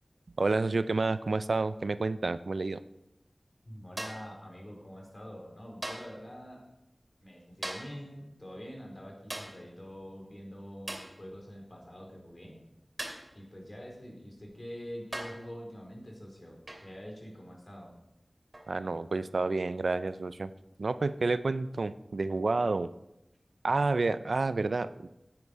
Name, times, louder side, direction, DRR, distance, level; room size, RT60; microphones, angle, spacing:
voice 1, 0.4-2.8 18.7-20.5 20.8-22.9 23.6-24.9, right 3 dB, 85° right, 13 dB, 0.4 m, -29 dB
voice 2, 3.6-6.7 7.2-12.6 13.3-17.9, equal, 40° left, -1 dB, 4.4 m, -45 dB
sound 1, 4.0-4.4 5.8-6.2 7.6-8.0 9.3-9.6 10.9-11.2 13.0-13.3 14.4-14.5 15.1-15.5 16.7-16.9 18.5-18.7, right 1 dB, 40° right, 2.5 m, -40 dB
9.5 x 8.9 x 5.4 m, 0.88 s
wide cardioid pair, 40°, 0 cm